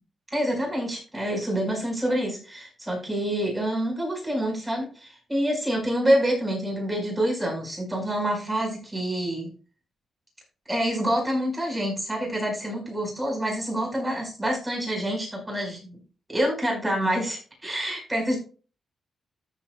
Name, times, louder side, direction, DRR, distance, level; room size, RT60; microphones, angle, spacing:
voice 1, 0.3-9.5 10.7-16.0 16.3-18.4, right 1 dB, 10° right, 0 dB, 4.9 m, -27 dB
14.0 x 8.1 x 2.3 m, 0.37 s
wide cardioid pair, 150°, 0 cm